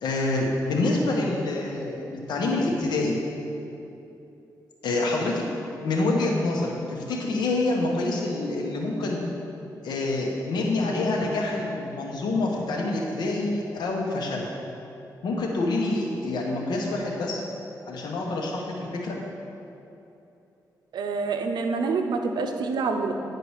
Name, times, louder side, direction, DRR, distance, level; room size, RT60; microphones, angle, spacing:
voice 1, 0.0-3.2 4.8-5.4 5.8-9.2 9.8-14.5 15.2-17.4 17.9-19.1, left 2 dB, 85° left, 0 dB, 1.2 m, -26 dB
voice 2, 20.9-23.1, right 4 dB, 85° right, 5 dB, 0.6 m, -27 dB
9.8 x 4.8 x 4.8 m, 2.8 s
cardioid pair, 85°, 7 cm